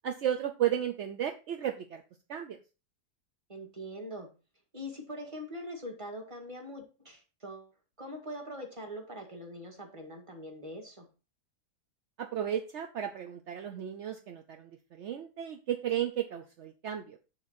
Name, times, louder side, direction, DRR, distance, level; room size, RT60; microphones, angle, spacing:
voice 1, 0.0-2.0 2.3-2.6 12.2-17.2, right 10 dB, 60° right, 5 dB, 0.7 m, -34 dB
voice 2, 3.5-4.3 4.7-7.7 8.0-11.1, equal, 20° right, 3 dB, 1.8 m, -42 dB
7.0 x 6.8 x 4.2 m, 0.31 s
omnidirectional pair, 1.8 m